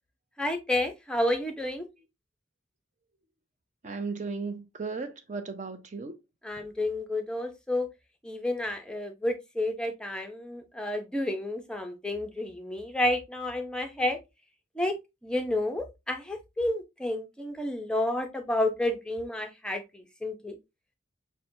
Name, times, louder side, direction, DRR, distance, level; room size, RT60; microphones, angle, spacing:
voice 1, 0.4-1.8 6.4-7.9 8.2-14.2 14.8-20.6, left 1 dB, 5° left, 0.6 m, -30 dB
voice 2, 3.8-6.2, right 4 dB, 40° right, 0.6 m, -35 dB
5.8 x 2.2 x 2.7 m
head